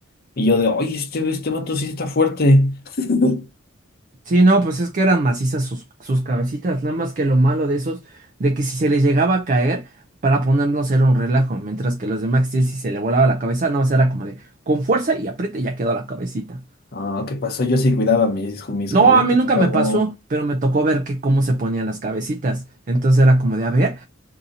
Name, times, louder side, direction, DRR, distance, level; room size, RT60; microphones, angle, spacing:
voice 1, 0.4-3.5 16.9-19.2 19.6-20.0, left 2 dB, 50° left, 0.7 m, -20 dB
voice 2, 4.3-9.9 10.2-16.6 18.9-24.1, right 2 dB, 40° right, 0.4 m, -19 dB
2.7 x 2.7 x 3.6 m
head